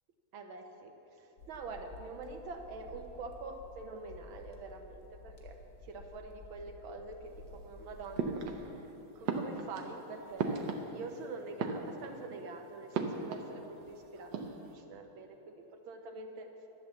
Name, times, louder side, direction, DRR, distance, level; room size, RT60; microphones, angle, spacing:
voice 1, 0.3-5.6 5.9-16.5, right 3 dB, 85° right, 4 dB, 1.9 m, -46 dB
sound 1, 1.4-8.6, left 2 dB, 55° left, 1.7 m, -53 dB
sound 2, 8.2-8.9 9.2-11.2 11.5-12.3 12.9-13.9 14.2-14.7, right 4 dB, 70° right, 1.6 m, -37 dB
11.0 x 11.0 x 7.0 m, 3.0 s
omnidirectional pair, 2.2 m